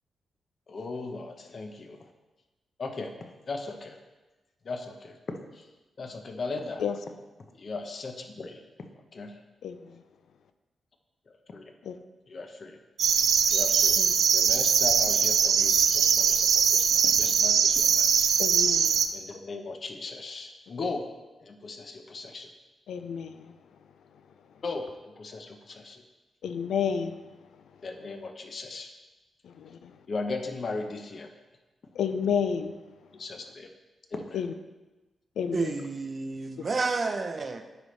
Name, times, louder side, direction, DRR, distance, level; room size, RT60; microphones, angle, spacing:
voice 1, 0.7-2.0 2.8-4.0 4.6-5.7 6.0-6.8 7.6-8.6 9.1-9.4 11.5-11.6 12.3-12.8 13.5-14.0 14.3-18.3 19.1-21.1 21.4-22.5 24.6-26.0 27.8-28.9 30.1-31.3 33.2-33.7 34.1-34.4, left 3 dB, 50° left, 5 dB, 0.8 m, -37 dB
voice 2, 9.6-10.0 11.8-11.9 14.0-14.1 18.4-19.0 22.9-23.5 26.4-27.2 29.4-29.9 32.0-32.7 34.3-34.5 35.4-35.7, left 7 dB, 90° left, 9 dB, 0.4 m, -30 dB
sound 1, 13.0-19.1, right 7 dB, 85° right, 0.4 m, -22 dB
voice 3, 35.5-37.6, right 3 dB, 40° right, 7 dB, 0.6 m, -30 dB
9.1 x 5.0 x 3.2 m, 1.1 s
cardioid pair, 100°, 0 cm